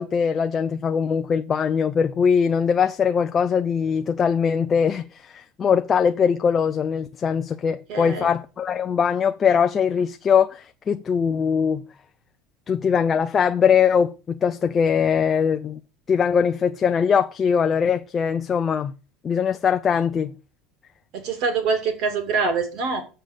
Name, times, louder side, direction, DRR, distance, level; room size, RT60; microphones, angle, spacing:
voice 1, 0.0-11.8 12.7-15.8 16.1-18.9 19.2-20.4, left 7 dB, 20° left, 0.5 m, -21 dB
voice 2, 7.9-8.3 21.1-23.0, right 4 dB, 45° right, 2.5 m, -24 dB
7.7 x 5.5 x 6.6 m
cardioid pair, 180°, 0 cm